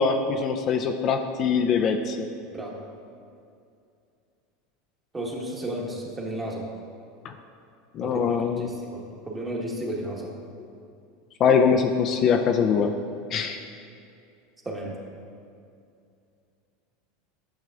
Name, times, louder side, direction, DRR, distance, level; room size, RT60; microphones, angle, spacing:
voice 1, 0.0-2.3 7.2-7.3 7.9-8.7 11.4-12.9 13.3-13.6, left 6 dB, 45° left, 5 dB, 0.4 m, -23 dB
voice 2, 5.1-6.6 8.0-8.2 8.6-10.3 14.6-15.0, right 1 dB, 20° right, -2 dB, 1.4 m, -33 dB
11.0 x 6.4 x 2.4 m, 2.5 s
supercardioid pair, 110°, 0 cm